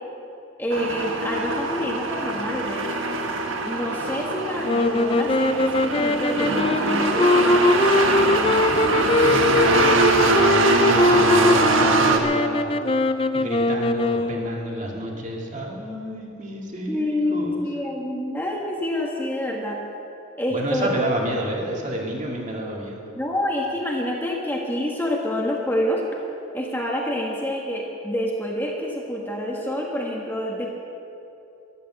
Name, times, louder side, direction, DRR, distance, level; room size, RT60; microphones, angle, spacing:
voice 1, 0.6-3.0 3.6-8.3 16.9-19.8 20.4-20.9 23.1-26.0 26.5-30.7, left 1 dB, 10° left, -2 dB, 1.5 m, -27 dB
sound 1, 0.7-12.2, right 3 dB, 75° right, 1.4 m, -22 dB
sound 2, 4.6-14.7, left 2 dB, 25° left, 0.4 m, -21 dB
voice 2, 9.2-13.0 13.3-17.6 20.5-23.1, equal, 35° right, -1 dB, 2.1 m, -30 dB
13.5 x 12.0 x 7.6 m, 2.8 s
head